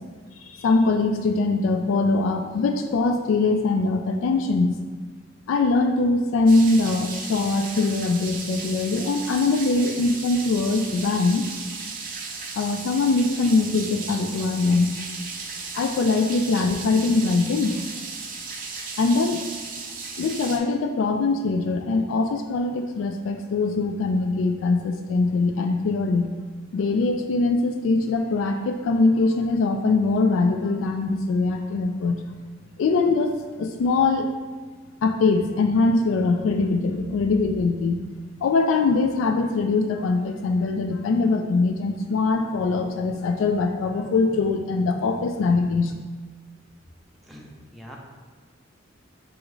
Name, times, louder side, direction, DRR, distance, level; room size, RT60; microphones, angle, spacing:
voice 1, 0.4-4.8 5.5-11.5 12.6-14.9 15.7-17.8 19.0-19.5 20.2-26.3 26.7-32.2 32.8-34.3 35.0-38.0 38.4-45.9, left 3 dB, 85° left, 5 dB, 0.3 m, -22 dB
sound 1, 6.5-20.6, right 4 dB, 45° right, 0.5 m, -35 dB
voice 2, 47.2-48.0, equal, ahead, -1 dB, 0.5 m, -44 dB
6.1 x 2.4 x 3.0 m, 1.4 s
head